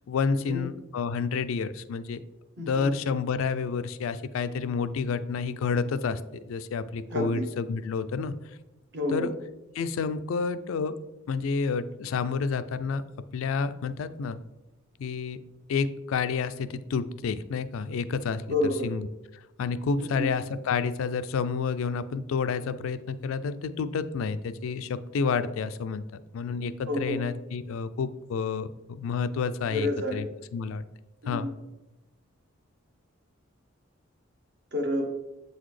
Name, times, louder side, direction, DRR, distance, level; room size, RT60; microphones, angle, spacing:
voice 1, 0.0-2.2 2.6-6.2 6.5-8.3 9.1-9.3 9.8-11.0 11.3-13.0 13.3-14.4 15.0-15.4 15.7-18.4 18.8-19.0 19.6-26.0 26.3-30.2 30.5-30.8 31.3-31.5, left 5 dB, 70° left, 12 dB, 0.3 m, -29 dB
voice 2, 2.6-2.9 7.1-7.5 8.9-9.3 18.5-18.9 20.0-20.3 26.9-27.3 29.7-30.3 31.2-31.5 34.7-35.0, left 1 dB, 55° right, 3 dB, 0.9 m, -29 dB
7.7 x 4.0 x 3.2 m, 1.0 s
head